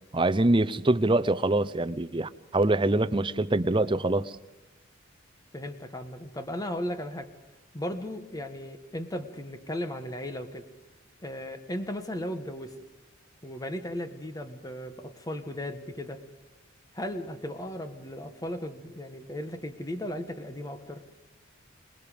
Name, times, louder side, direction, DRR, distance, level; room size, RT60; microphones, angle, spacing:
voice 1, 0.1-4.3, right 2 dB, 25° right, 11 dB, 0.7 m, -24 dB
voice 2, 5.5-7.3 7.7-10.6 11.2-12.7 13.4-16.2 16.9-21.0, left 1 dB, 20° left, 8 dB, 1.5 m, -36 dB
27.0 x 20.0 x 5.2 m, 1.1 s
head